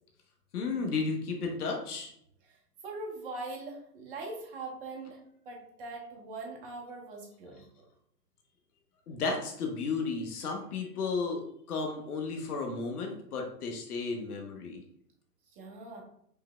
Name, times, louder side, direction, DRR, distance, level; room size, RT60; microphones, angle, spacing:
voice 1, 0.5-2.1 9.1-11.4 11.7-14.8, left 4 dB, 65° left, 2 dB, 1.1 m, -33 dB
voice 2, 2.8-5.2 5.4-7.8 15.6-16.0, right 2 dB, 35° right, 0 dB, 1.2 m, -42 dB
5.6 x 3.2 x 2.3 m, 0.70 s
hypercardioid pair, 140°, 48 cm